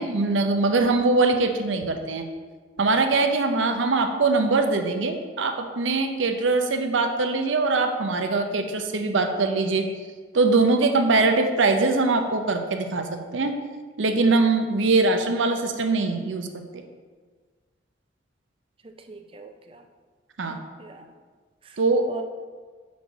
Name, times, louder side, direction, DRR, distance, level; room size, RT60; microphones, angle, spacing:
voice 1, 0.0-2.2 2.8-9.9 10.3-13.5 14.0-16.8 20.4-20.6 21.8-22.0, right 3 dB, 90° right, 6 dB, 0.6 m, -22 dB
voice 2, 18.8-19.8 20.4-21.1 21.6-21.8 22.1-22.2, right 3 dB, 30° right, 6 dB, 0.5 m, -42 dB
6.2 x 4.1 x 5.9 m, 1.5 s
head